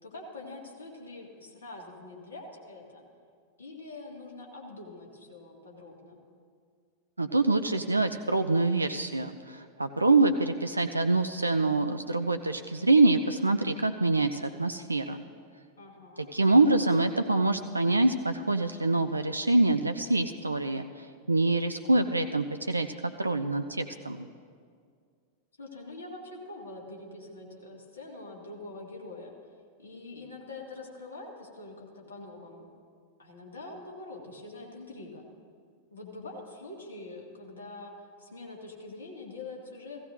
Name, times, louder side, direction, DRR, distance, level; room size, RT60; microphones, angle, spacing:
voice 1, 0.0-3.0 3.6-6.2 15.8-16.3 25.6-29.3 29.8-32.7 33.2-35.3 35.9-40.0, left 2 dB, 70° left, -1 dB, 1.9 m, -44 dB
voice 2, 7.2-15.2 16.3-24.2, right 2 dB, 80° right, 8 dB, 0.3 m, -25 dB
16.0 x 15.0 x 2.5 m, 2.1 s
figure-of-eight pair, 90°, 0 cm